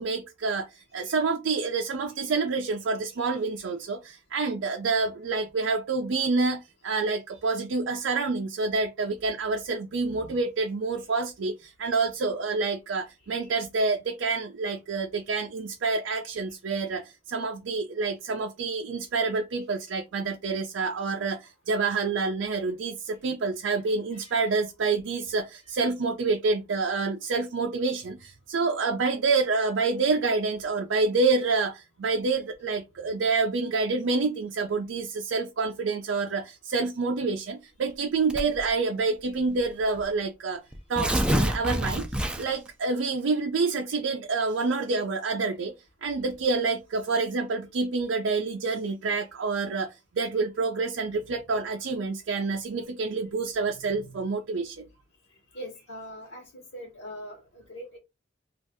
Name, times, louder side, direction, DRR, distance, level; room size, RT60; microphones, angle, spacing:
voice 1, 0.0-40.6 40.9-45.7 46.0-54.9, right 4 dB, 80° right, 0.4 m, -28 dB
voice 2, 10.0-10.4 24.1-24.4 54.1-54.2 55.5-58.0, equal, 65° left, 1.0 m, -42 dB
Tearing, 38.3-38.7 39.6-39.7 40.0-40.1 40.7-42.7, equal, 5° right, 0.3 m, -27 dB
2.6 x 2.4 x 3.5 m
head